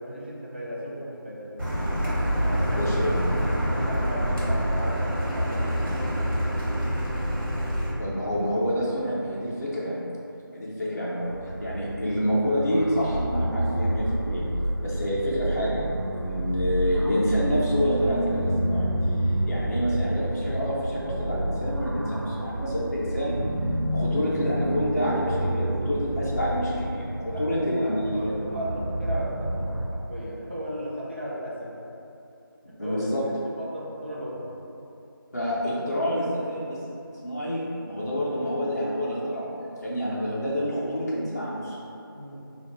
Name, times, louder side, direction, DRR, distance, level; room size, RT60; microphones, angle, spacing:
voice 1, 0.0-1.7 2.4-3.4 3.7-6.3 27.3-31.8 32.7-33.2 33.4-34.4 42.1-42.4, equal, 30° right, -7 dB, 0.6 m, -36 dB
Car, 1.6-7.9, equal, 65° right, 1.4 m, -26 dB
voice 2, 2.8-3.1 8.0-10.0 10.5-11.3 11.6-14.5 14.8-15.8 16.2-18.9 19.2-23.4 23.9-28.3 32.8-33.2 35.3-36.8 37.2-39.5 39.8-41.8, equal, 45° left, -7 dB, 0.6 m, -28 dB
sound 1, 11.2-29.9, right 1 dB, 80° right, 0.5 m, -29 dB
3.5 x 2.4 x 4.0 m, 2.8 s
figure-of-eight pair, 175°, 12 cm